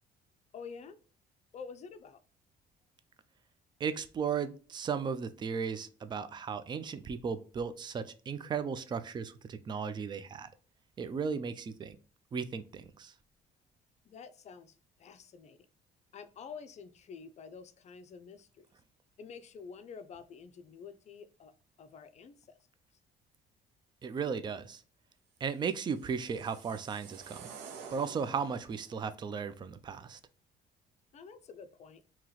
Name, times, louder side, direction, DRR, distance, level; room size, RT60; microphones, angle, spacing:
voice 1, 0.5-1.0 1.5-2.2 14.1-15.7 16.1-18.6 19.2-21.5 21.8-22.6 31.1-32.0, left 6 dB, 40° left, 0.5 m, -48 dB
voice 2, 3.8-10.5 11.0-12.0 12.3-13.1 24.0-24.8 25.4-27.5 27.9-30.2, right 6 dB, 25° right, 0.4 m, -36 dB
sound 1, 25.7-28.9, right 6 dB, 85° right, 0.7 m, -50 dB
2.9 x 2.9 x 3.9 m
cardioid pair, 110°, 17 cm